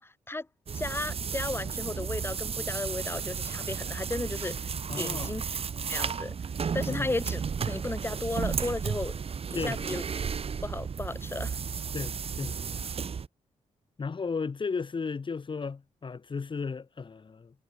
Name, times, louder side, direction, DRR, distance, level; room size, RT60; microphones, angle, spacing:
voice 1, 0.7-4.6 5.0-5.4 5.9-6.3 6.7-9.1 9.5-10.0 10.6-11.6, left 2 dB, 20° left, 7.4 m, -34 dB
sound 1, 0.7-13.3, right 6 dB, 50° right, 3.6 m, -33 dB
voice 2, 4.9-5.3 6.9-7.1 9.5-9.8 11.9-12.6 14.0-17.5, left 5 dB, 40° left, 6.8 m, -34 dB
cardioid pair, 90°, 13 cm